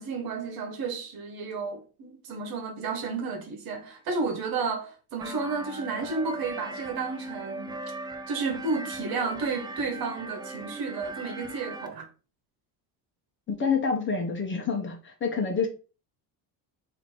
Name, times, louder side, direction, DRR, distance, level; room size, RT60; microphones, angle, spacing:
voice 1, 0.0-7.8 8.3-12.1, right 4 dB, 60° right, 1.3 m, -32 dB
sound 1, 5.2-11.9, right 2 dB, 10° right, 0.3 m, -39 dB
voice 2, 13.5-15.7, left 5 dB, 30° left, 1.0 m, -27 dB
3.9 x 2.9 x 4.5 m
cardioid pair, 140°, 40 cm